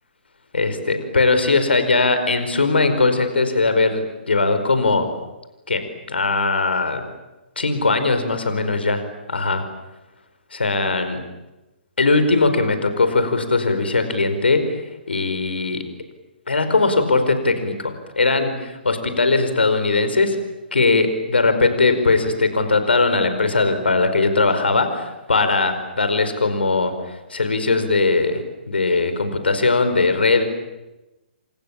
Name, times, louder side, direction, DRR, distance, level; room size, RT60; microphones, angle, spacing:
voice 1, 0.5-5.1 5.7-5.8 6.1-7.0 7.6-9.0 9.3-9.6 10.5-11.2 12.0-14.8 15.1-15.8 16.5-20.4 20.7-28.4 28.7-30.4, left 3 dB, 70° left, 9 dB, 4.8 m, -19 dB
30.0 x 26.5 x 7.3 m, 1.0 s
figure-of-eight pair, 125°, 6 cm